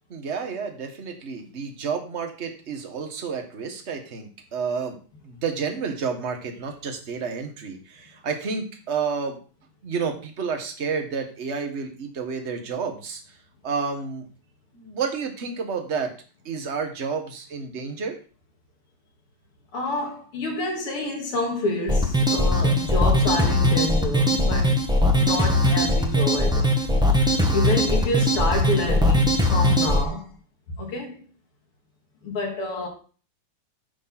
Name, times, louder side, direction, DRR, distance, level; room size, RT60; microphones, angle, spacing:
voice 1, 0.1-5.0 5.2-9.4 9.8-13.4 13.6-14.2 14.7-16.1 16.4-18.2, right 5 dB, 35° right, 1.4 m, -30 dB
voice 2, 19.7-26.7 27.5-30.3 30.8-31.3 32.2-32.9, left 2 dB, 80° left, 2.7 m, -28 dB
sound 1, 21.9-30.0, left 1 dB, 5° right, 0.5 m, -20 dB
9.9 x 4.4 x 5.9 m
omnidirectional pair, 2.4 m